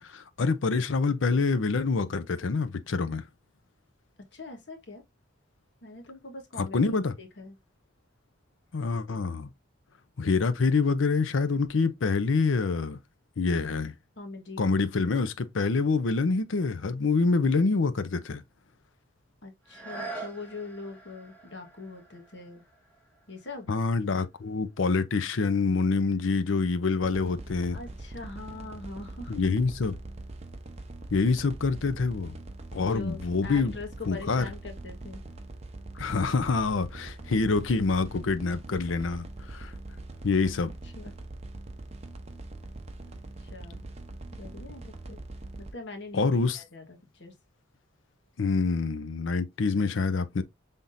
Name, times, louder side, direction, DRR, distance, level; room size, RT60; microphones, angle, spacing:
voice 1, 0.0-3.2 6.6-7.1 8.7-9.5 10.2-13.0 13.4-13.9 14.6-18.4 23.7-27.8 29.3-30.0 31.1-32.4 32.7-33.7 34.1-34.4 36.0-39.7 40.2-40.7 46.1-46.6 48.4-50.4, left 4 dB, 85° left, 0.6 m, -26 dB
voice 2, 4.3-5.0 5.8-7.5 14.2-14.7 19.4-22.6 23.3-23.7 27.7-29.3 32.8-35.2 40.6-41.1 43.5-43.9 44.3-45.2 45.6-47.3, left 3 dB, 65° left, 1.3 m, -42 dB
sound 1, 19.6-25.3 25.9-26.0, right 3 dB, 10° left, 1.3 m, -45 dB
sound 2, 27.0-45.7, right 2 dB, 35° right, 0.7 m, -42 dB
5.6 x 3.6 x 2.5 m
head